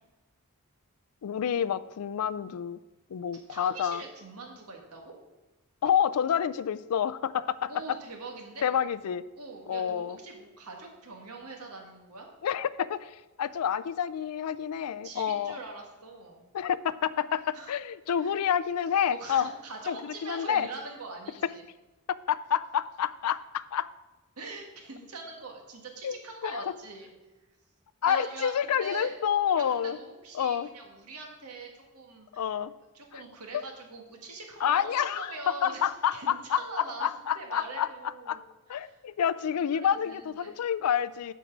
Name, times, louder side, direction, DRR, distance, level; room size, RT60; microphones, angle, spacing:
voice 1, 1.2-2.8 3.1-4.0 5.8-7.7 8.6-9.2 9.7-10.2 12.4-15.6 16.5-19.5 19.9-20.7 22.3-23.9 26.0-26.7 28.0-30.0 30.3-30.7 32.3-32.7 33.1-33.2 33.5-33.6 34.6-38.4 38.7-41.3, left 8 dB, 80° left, 15 dB, 0.4 m, -29 dB
voice 2, 3.3-5.1 7.7-8.6 9.3-12.3 15.0-16.4 17.5-17.7 18.2-18.3 19.1-21.6 24.4-27.1 28.1-29.2 29.6-32.5 32.9-38.4 38.7-39.0 39.7-40.5, right 3 dB, 85° right, 2 dB, 1.7 m, -43 dB
7.8 x 4.6 x 7.2 m, 1.1 s
head